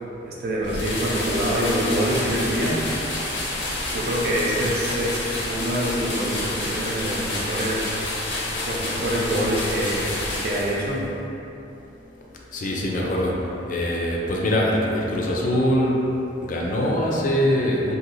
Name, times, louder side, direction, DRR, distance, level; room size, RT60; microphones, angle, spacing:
voice 1, 0.3-2.8 3.9-8.0 8.7-10.2 10.4-11.1 13.0-13.2, right 1 dB, 60° right, -4 dB, 0.5 m, -25 dB
sound 1, 0.6-11.0, left 2 dB, 90° left, 0.6 m, -29 dB
voice 2, 12.5-13.4 13.7-16.0 16.4-18.0, equal, 45° left, -2 dB, 0.4 m, -23 dB
3.0 x 2.7 x 2.6 m, 3.0 s
head